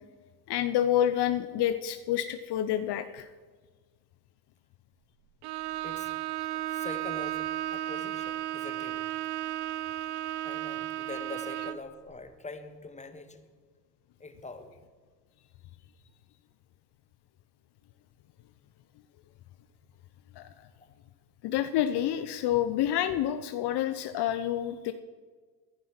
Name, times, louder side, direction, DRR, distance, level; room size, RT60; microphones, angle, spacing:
voice 1, 0.5-3.3 20.4-20.7 21.4-24.9, left 11 dB, 55° left, 10 dB, 0.9 m, -28 dB
Bowed string instrument, 5.4-11.9, right 13 dB, 75° right, 0.9 m, -34 dB
voice 2, 5.8-6.1 6.5-9.0 10.4-13.4 14.2-14.7 20.8-20.9, left 3 dB, 15° left, 8 dB, 1.7 m, -44 dB
15.0 x 10.5 x 5.9 m, 1.5 s
hypercardioid pair, 80°, 49 cm